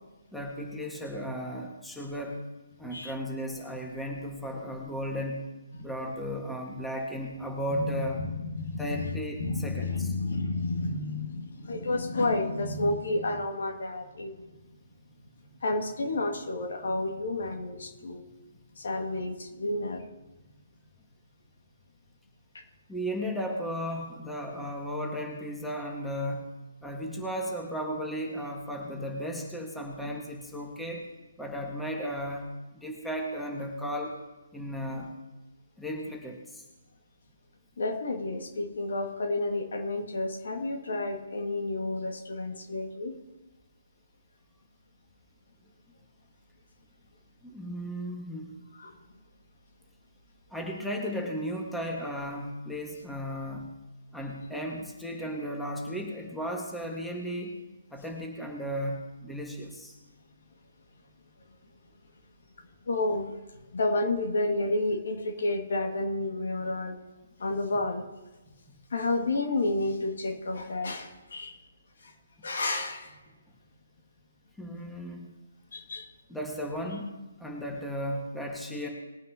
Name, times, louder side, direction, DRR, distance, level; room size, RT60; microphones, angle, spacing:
voice 1, 0.3-2.4 2.8-5.4 5.8-8.2 8.8-10.1 18.0-18.1 22.9-26.5 26.8-31.1 31.4-32.5 32.7-34.2 34.5-35.1 35.8-36.6 47.4-48.6 50.5-53.7 54.1-57.6 57.9-59.9 68.5-68.6 74.6-75.3 76.3-77.1 77.4-78.9, equal, 5° left, -1 dB, 1.6 m, -35 dB
voice 2, 7.7-14.5 15.6-18.2 18.8-20.0 22.5-22.6 37.8-43.1 48.7-49.0 62.9-63.3 63.7-67.0 67.4-68.0 68.9-71.6 72.0-72.1 72.4-73.2 75.7-76.1, left 2 dB, 65° left, 3 dB, 2.0 m, -31 dB
20.0 x 9.3 x 2.9 m, 1.1 s
figure-of-eight pair, 140°, 0 cm